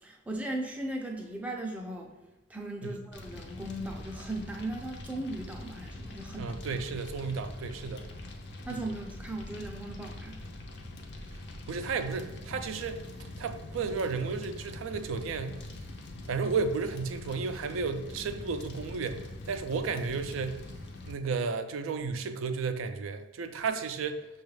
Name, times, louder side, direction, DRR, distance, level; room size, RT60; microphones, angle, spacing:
voice 1, 0.0-2.1 2.5-6.5 8.7-10.4, right 1 dB, 5° right, 0 dB, 0.4 m, -37 dB
Fire, 3.1-21.1, left 1 dB, 55° left, 0.5 m, -43 dB
voice 2, 6.4-8.0 8.7-8.9 11.7-13.0 13.4-15.7 16.3-20.6 21.1-24.3, right 5 dB, 85° right, 8 dB, 0.4 m, -33 dB
5.8 x 2.3 x 3.2 m, 1.1 s
head